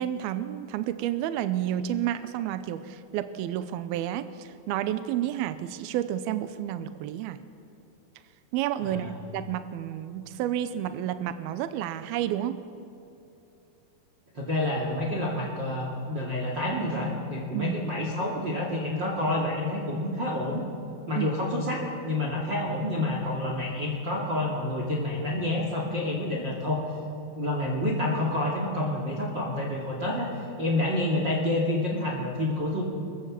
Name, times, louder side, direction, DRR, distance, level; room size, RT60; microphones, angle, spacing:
voice 1, 0.0-7.4 8.5-12.6 17.5-17.8 21.2-21.3, right 11 dB, 80° right, 11 dB, 2.6 m, -30 dB
voice 2, 8.8-9.2 14.3-20.6 21.1-26.8 27.4-32.8, left 1 dB, 35° right, -1 dB, 2.5 m, -28 dB
22.5 x 22.5 x 7.4 m, 2.9 s
omnidirectional pair, 4.5 m